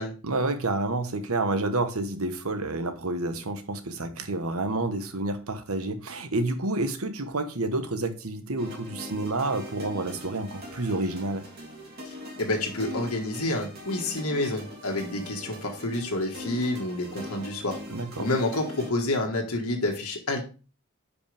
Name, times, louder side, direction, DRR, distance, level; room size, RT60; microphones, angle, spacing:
voice 1, 0.2-11.4 17.9-18.3, right 2 dB, 80° right, 1.2 m, -29 dB
sound 1, 8.6-18.9, left 1 dB, 45° right, 3.2 m, -41 dB
voice 2, 12.0-17.8 18.2-20.4, left 2 dB, 85° left, 1.7 m, -29 dB
10.0 x 5.1 x 3.5 m
head